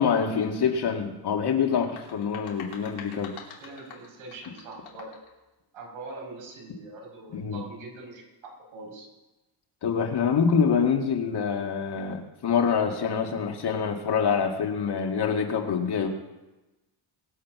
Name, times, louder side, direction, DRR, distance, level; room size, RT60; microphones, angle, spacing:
voice 1, 0.0-3.4 7.3-7.6 9.8-16.1, left 6 dB, 55° left, 2 dB, 2.2 m, -25 dB
sound 1, 1.7-5.3, left 6 dB, 80° left, 3.5 m, -45 dB
voice 2, 3.6-5.1 5.7-9.1, right 3 dB, 85° right, -1 dB, 5.3 m, -43 dB
22.0 x 7.6 x 6.1 m, 1.1 s
cardioid pair, 120°, 47 cm